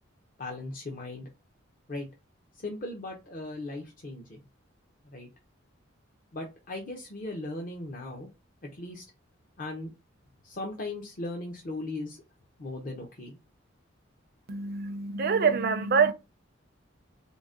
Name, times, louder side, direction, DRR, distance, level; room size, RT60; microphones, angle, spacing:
voice 1, 0.4-1.3 1.9-2.1 2.5-4.5 5.0-5.3 6.3-8.3 8.6-9.0 9.6-9.9 10.4-12.2 12.6-13.4, left 2 dB, 45° left, 0.6 m, -38 dB
voice 2, 14.5-16.1, right 5 dB, 50° right, 0.4 m, -25 dB
3.8 x 2.1 x 3.6 m
head